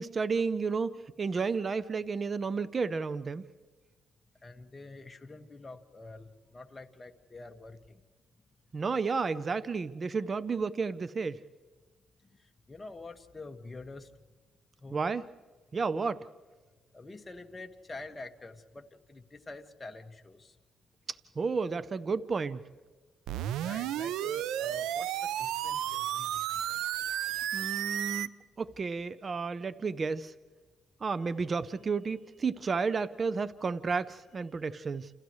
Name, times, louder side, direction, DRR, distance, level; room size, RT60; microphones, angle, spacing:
voice 1, 0.0-3.4 8.7-11.4 14.9-15.2 15.7-16.2 21.4-22.6 27.5-28.3 28.6-30.3 31.0-35.1, right 4 dB, 35° right, 14 dB, 0.7 m, -32 dB
voice 2, 4.4-8.0 12.2-14.1 14.8-15.0 16.9-20.6 23.6-26.8, left 2 dB, 25° left, 5 dB, 1.7 m, -47 dB
sound 1, 23.3-28.3, right 12 dB, 90° right, 0.5 m, -32 dB
29.0 x 28.5 x 3.2 m, 1.4 s
cardioid pair, 90°, 0 cm